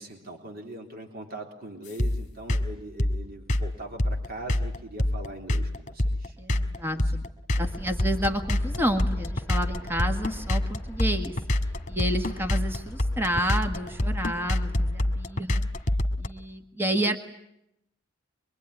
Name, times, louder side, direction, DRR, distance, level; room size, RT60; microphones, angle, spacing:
voice 1, 0.0-6.4 6.8-7.1, right 1 dB, 50° right, 3 dB, 3.5 m, -41 dB
sound 1, 2.0-16.3, left 1 dB, 40° left, 1.8 m, -26 dB
voice 2, 6.4-7.2 7.6-11.3 11.9-15.7 16.2-17.2, right 1 dB, 10° right, 6 dB, 1.7 m, -30 dB
Aircraft, 7.6-16.0, left 1 dB, 10° left, 2.6 m, -39 dB
24.0 x 23.5 x 10.0 m, 0.81 s
head